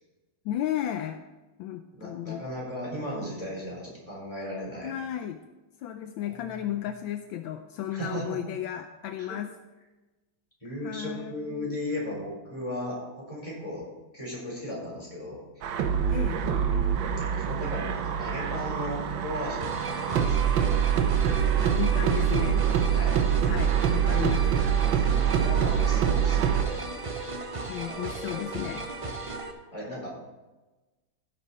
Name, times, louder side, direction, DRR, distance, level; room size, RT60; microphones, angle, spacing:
voice 1, 0.4-1.2 1.6-2.4 4.8-5.4 5.8-9.5 10.8-11.8 16.1-16.4 21.6-22.6 23.4-24.5 27.6-28.9, left 11 dB, 80° left, 7 dB, 1.3 m, -34 dB
voice 2, 1.9-4.9 6.2-6.4 7.9-8.4 10.6-13.9 14.1-15.7 17.2-20.4 22.9-23.2 24.1-24.2 24.9-26.8 29.7-30.1, left 1 dB, 15° left, -4 dB, 4.3 m, -36 dB
sound 1, 15.6-26.6, right 8 dB, 75° right, 1.5 m, -25 dB
sound 2, 19.6-29.5, right 3 dB, 60° right, 0.3 m, -36 dB
16.0 x 6.5 x 4.2 m, 1.1 s
omnidirectional pair, 2.2 m